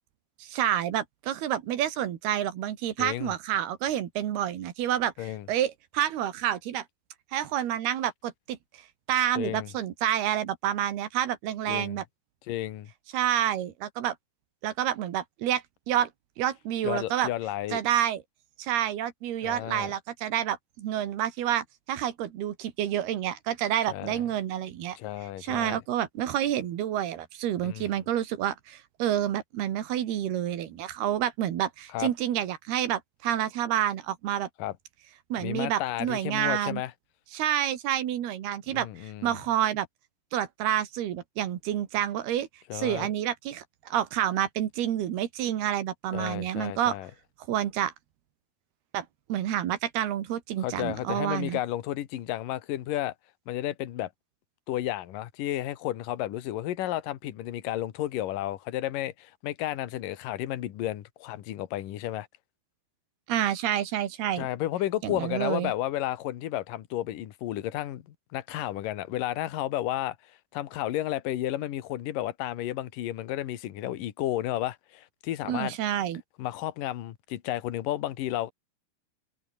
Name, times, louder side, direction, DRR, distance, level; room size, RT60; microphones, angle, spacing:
voice 1, 0.4-6.8 7.3-8.6 9.1-12.0 13.1-14.2 14.6-16.1 16.4-17.3 17.7-18.2 18.6-25.0 25.4-34.5 35.3-36.8 37.3-39.9 40.3-42.5 42.7-47.0 47.5-47.9 48.9-51.6 63.3-64.5 65.0-65.7 75.5-76.2, right 11 dB, 85° right, 3.9 m, -29 dB
voice 2, 3.0-3.3 5.2-5.5 9.4-9.7 11.7-12.0 12.5-12.9 16.8-17.8 19.4-19.9 23.9-24.2 25.0-25.8 27.6-28.0 31.9-32.1 34.6-34.7 35.4-36.9 38.7-39.4 42.7-43.1 46.1-47.1 50.6-53.1 53.5-54.1 54.7-62.3 64.4-68.0 68.3-70.2 70.5-75.7 76.4-78.5, left 13 dB, 65° left, 3.0 m, -32 dB
omnidirectional pair, 4.4 m